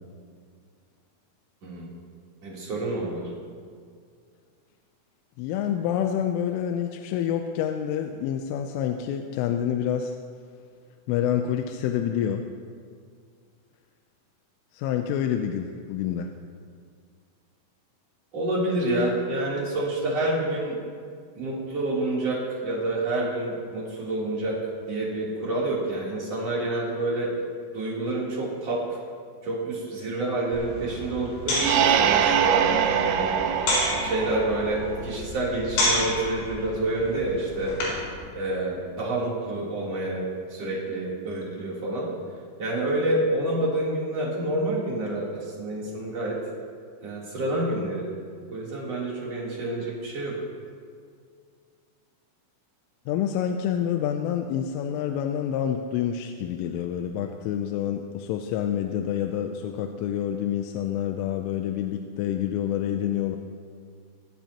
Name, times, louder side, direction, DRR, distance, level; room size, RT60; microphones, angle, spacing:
voice 1, 2.4-3.2 18.3-20.8 21.4-24.6 24.8-27.3 27.7-29.0 29.4-37.7 38.3-40.2 40.5-42.1 42.6-46.4 47.0-48.1 48.5-50.4, right 2 dB, 35° right, -6 dB, 3.9 m, -28 dB
voice 2, 5.4-10.1 11.1-12.4 14.7-16.3 53.1-63.4, left 9 dB, 85° left, 4 dB, 3.2 m, -27 dB
sound 1, 30.5-38.1, left 1 dB, 65° left, 7.1 m, -30 dB
sound 2, 31.6-35.2, right 8 dB, 85° right, 2.3 m, -23 dB
22.5 x 15.0 x 3.0 m, 2.1 s
omnidirectional pair, 5.7 m